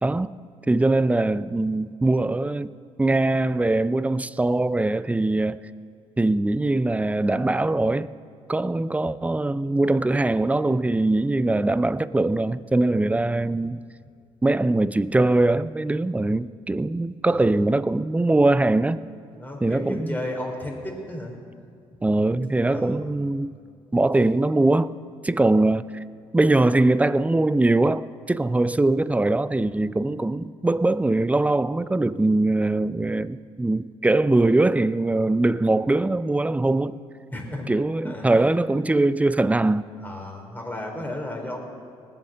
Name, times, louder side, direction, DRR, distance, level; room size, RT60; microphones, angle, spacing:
voice 1, 0.0-0.3 0.7-2.7 3.0-5.6 6.2-8.1 8.5-13.8 14.4-19.0 19.6-20.2 22.0-23.6 23.9-25.0 25.2-25.8 26.3-37.0 37.7-39.9, right 2 dB, 10° right, 0.4 m, -22 dB
voice 2, 17.2-17.6 19.3-21.3 22.5-23.1 37.3-37.7 38.0-38.6 40.0-41.6, left 1 dB, 15° left, 3.7 m, -34 dB
19.0 x 7.5 x 6.7 m
hypercardioid pair, 60°, 13 cm